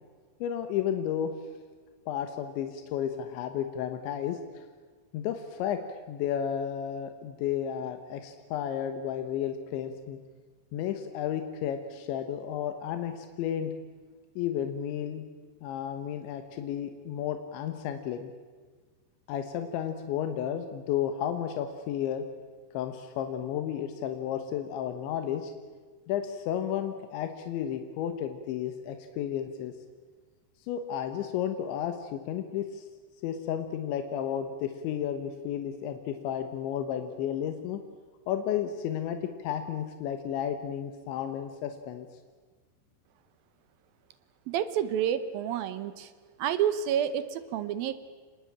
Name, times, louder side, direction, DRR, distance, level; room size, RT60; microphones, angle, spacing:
voice 1, 0.4-1.3 2.1-4.7 5.1-10.2 10.7-13.7 14.4-15.3 15.6-18.3 19.3-22.3 22.7-25.5 26.1-29.7 30.7-32.9 33.2-37.8 38.3-42.1, left 9 dB, 90° left, 7 dB, 3.6 m, -32 dB
voice 2, 44.5-46.1 46.4-47.9, right 9 dB, 75° right, 12 dB, 2.3 m, -29 dB
26.5 x 20.0 x 8.8 m, 1.5 s
omnidirectional pair, 5.2 m